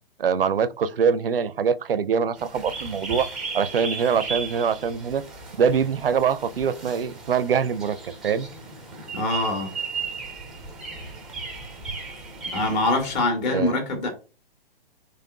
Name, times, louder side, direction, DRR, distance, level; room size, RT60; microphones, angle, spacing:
voice 1, 0.2-3.3 3.5-5.2 5.6-8.5 13.5-13.8, right 6 dB, 70° right, 0.5 m, -23 dB
sound 1, 2.4-13.2, right 4 dB, ahead, 0.4 m, -36 dB
voice 2, 9.1-9.7 12.5-14.1, left 2 dB, 50° left, 1.8 m, -24 dB
5.4 x 3.4 x 2.2 m
figure-of-eight pair, 120°, 30 cm